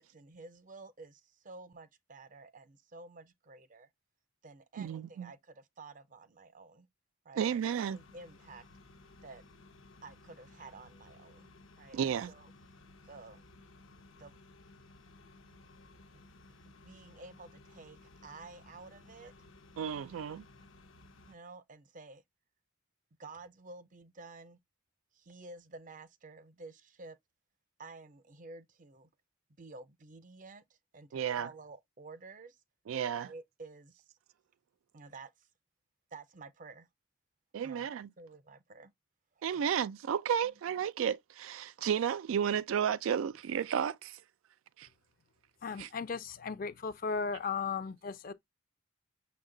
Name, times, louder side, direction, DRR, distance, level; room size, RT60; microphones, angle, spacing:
voice 1, 0.0-3.9 4.4-6.9 7.2-8.6 9.2-9.4 10.0-11.5 11.8-12.5 13.1-13.4 14.1-14.4 16.1-16.2 16.8-19.3 21.3-22.2 23.2-24.6 25.1-27.2 27.8-29.1 29.6-32.6 33.1-34.2 34.9-35.5 36.1-36.9 37.6-37.9 38.2-38.9 39.3-39.6 40.4-40.6, right 3 dB, 40° right, 0.5 m, -51 dB
voice 2, 4.8-5.3 7.4-8.0 11.9-12.3 19.8-20.4 31.1-31.5 32.9-33.3 37.5-38.1 39.4-44.2 44.8-44.9 45.8-45.9, right 8 dB, 85° right, 0.3 m, -32 dB
sound 1, 7.9-21.3, left 2 dB, 85° left, 0.8 m, -58 dB
voice 3, 45.6-48.3, left 5 dB, 45° left, 0.5 m, -36 dB
6.4 x 2.1 x 3.7 m
head